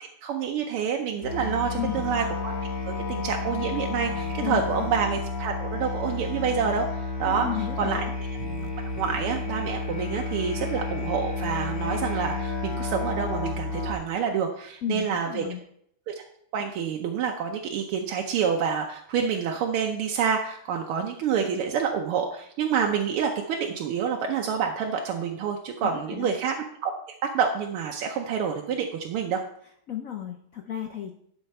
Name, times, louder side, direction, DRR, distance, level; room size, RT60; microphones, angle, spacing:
voice 1, 0.2-2.6 2.8-7.5 7.8-8.1 9.0-15.4 16.1-16.2 16.5-26.6 26.8-26.9 27.2-29.4, right 7 dB, 85° right, 2 dB, 1.7 m, -28 dB
Musical instrument, 1.2-13.9, left 3 dB, 40° left, 2.3 m, -31 dB
sound 1, 1.8-2.2 4.0-4.9 6.1-6.5 8.3-9.3, right 6 dB, 70° right, 1.6 m, -45 dB
voice 2, 7.2-8.1 14.8-15.6 25.8-26.3 29.9-31.1, left 10 dB, 90° left, 4 dB, 0.7 m, -33 dB
11.5 x 5.6 x 4.3 m, 0.70 s
omnidirectional pair, 2.3 m